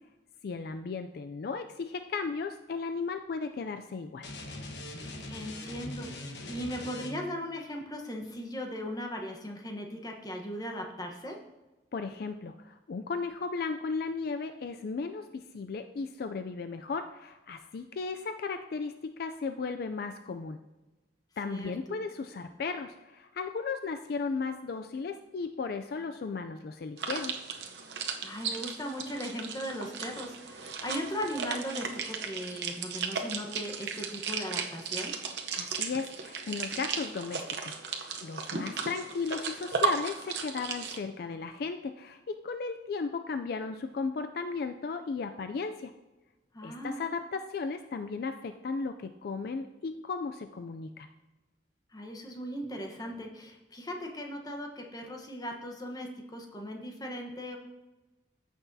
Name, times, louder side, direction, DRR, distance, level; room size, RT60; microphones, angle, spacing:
voice 1, 0.4-4.3 11.9-20.6 21.4-27.3 35.5-45.9 46.6-51.1, left 4 dB, 60° left, 8 dB, 0.4 m, -35 dB
sound 1, 4.2-7.4, left 2 dB, 75° left, 1.2 m, -41 dB
voice 2, 5.3-11.4 21.4-22.0 28.2-35.1 46.5-47.0 51.9-57.6, equal, 20° left, 2 dB, 1.0 m, -38 dB
sound 2, 27.0-41.0, right 5 dB, 75° right, 0.8 m, -35 dB
14.5 x 6.1 x 2.7 m, 1.1 s
head